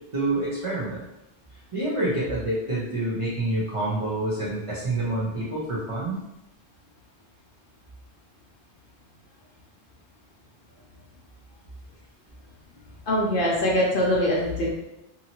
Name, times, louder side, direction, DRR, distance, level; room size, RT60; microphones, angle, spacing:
voice 1, 0.1-1.0 1.7-6.2, right 1 dB, 35° right, -8 dB, 0.6 m, -27 dB
voice 2, 13.1-14.7, equal, 60° left, -3 dB, 0.8 m, -23 dB
2.8 x 2.8 x 2.7 m, 0.90 s
omnidirectional pair, 1.1 m